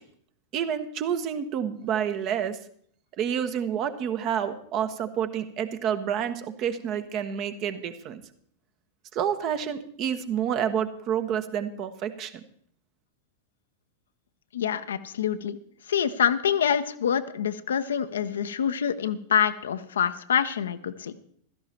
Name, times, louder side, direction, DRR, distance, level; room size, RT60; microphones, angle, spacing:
voice 1, 0.5-2.6 3.2-8.2 9.1-12.3, right 8 dB, 40° right, 10 dB, 1.2 m, -29 dB
voice 2, 14.5-15.6 15.9-21.2, left 8 dB, 65° left, 10 dB, 0.8 m, -26 dB
16.0 x 13.5 x 4.4 m, 0.63 s
figure-of-eight pair, 90°, 0 cm